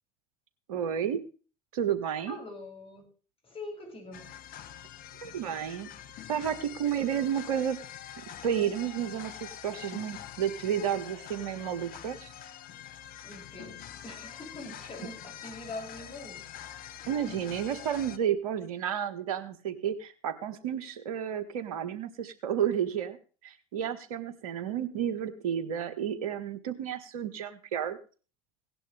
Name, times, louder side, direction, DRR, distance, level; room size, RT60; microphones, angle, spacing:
voice 1, 0.7-1.2 1.7-2.4 5.2-5.9 6.3-7.8 8.4-12.3 17.1-23.2 23.4-28.0, right 9 dB, 75° right, 11 dB, 1.8 m, -31 dB
voice 2, 2.3-3.1 3.4-4.3 13.2-16.4, left 2 dB, 30° left, 1 dB, 7.8 m, -43 dB
sound 1, 4.1-18.2, left 10 dB, 50° left, 1.3 m, -45 dB
17.5 x 11.0 x 3.5 m, 0.36 s
hypercardioid pair, 75°, 19 cm